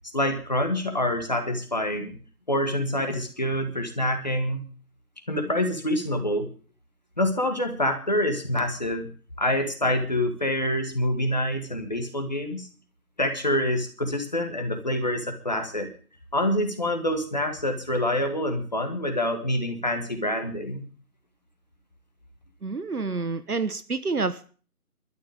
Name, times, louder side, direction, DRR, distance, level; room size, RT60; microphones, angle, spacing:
voice 1, 0.1-2.2 2.5-4.7 5.3-6.5 7.2-9.1 9.4-12.7 13.2-15.9 16.3-20.9, left 1 dB, 30° left, 5 dB, 1.9 m, -26 dB
voice 2, 22.6-24.5, right 4 dB, 80° right, 13 dB, 1.3 m, -28 dB
24.0 x 12.5 x 3.6 m, 0.40 s
figure-of-eight pair, 175°, 45 cm